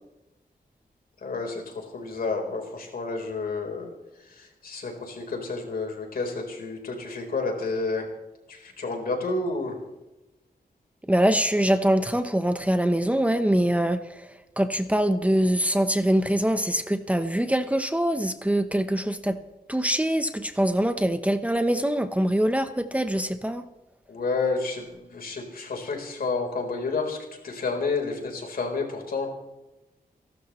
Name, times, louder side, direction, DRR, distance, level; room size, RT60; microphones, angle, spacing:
voice 1, 1.2-3.9 4.3-8.1 8.5-9.8 24.1-27.2 27.4-29.3, left 3 dB, 70° left, 2 dB, 4.2 m, -30 dB
voice 2, 11.1-14.3 14.6-19.4 19.7-23.6, right 1 dB, 10° right, 8 dB, 0.9 m, -23 dB
29.5 x 12.5 x 3.2 m, 0.99 s
wide cardioid pair, 120°, 16 cm